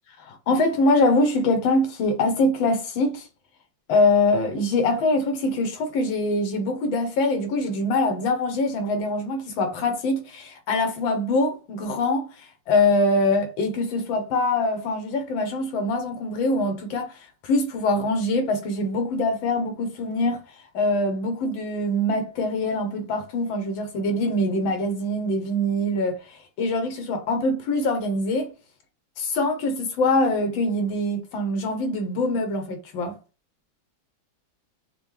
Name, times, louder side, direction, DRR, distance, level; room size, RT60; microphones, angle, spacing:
voice 1, 0.2-3.2 3.9-17.2 17.4-20.4 20.7-28.5 29.2-33.1, left 2 dB, 80° left, 1.7 m, -24 dB
5.9 x 2.3 x 3.2 m
omnidirectional pair, 2.1 m